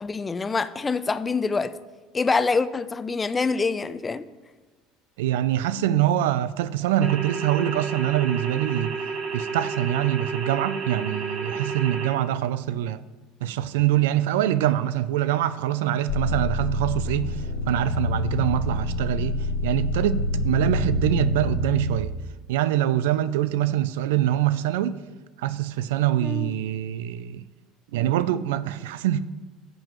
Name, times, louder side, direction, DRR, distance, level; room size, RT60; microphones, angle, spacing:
voice 1, 0.0-1.7 2.1-4.3 26.2-26.5, left 4 dB, 20° left, 0.4 m, -25 dB
voice 2, 5.2-9.0 9.3-13.0 13.4-22.1 22.5-25.0 25.4-27.4 27.9-29.2, right 12 dB, 85° right, 0.4 m, -24 dB
sound 1, 7.0-12.1, right 5 dB, 55° right, 2.6 m, -31 dB
sound 2, 16.1-22.0, left 1 dB, 80° left, 0.7 m, -26 dB
15.0 x 7.6 x 3.0 m
supercardioid pair, 95°, 0 cm